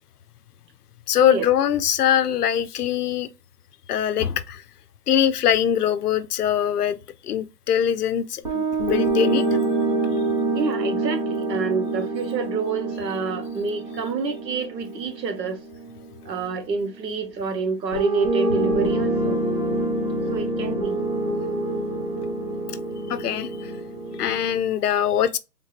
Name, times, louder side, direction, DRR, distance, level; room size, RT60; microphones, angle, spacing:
voice 1, 1.1-3.3 3.9-4.6 5.1-7.0 7.2-9.5 23.1-23.7 24.2-25.4, left 9 dB, 65° left, 0.6 m, -22 dB
sound 1, 8.4-16.6 17.9-24.6, right 2 dB, 25° right, 0.8 m, -26 dB
voice 2, 10.5-15.6 16.2-19.4 20.3-21.0, right 4 dB, 85° right, 1.0 m, -28 dB
3.6 x 2.9 x 2.4 m
hypercardioid pair, 170°, 49 cm